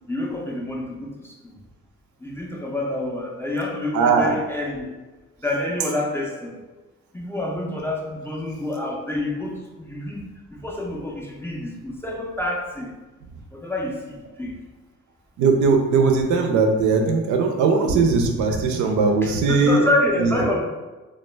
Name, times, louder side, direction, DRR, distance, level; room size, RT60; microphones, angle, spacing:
voice 1, 0.1-1.5 2.2-4.8 5.4-6.6 7.1-10.2 10.5-12.9 13.5-14.5 19.2-20.6, left 1 dB, 10° left, -2 dB, 0.4 m, -27 dB
voice 2, 3.9-4.4 15.4-19.8 20.2-20.3, right 4 dB, 75° right, 3 dB, 0.5 m, -19 dB
2.1 x 2.1 x 3.1 m, 1.2 s
cardioid pair, 90°, 30 cm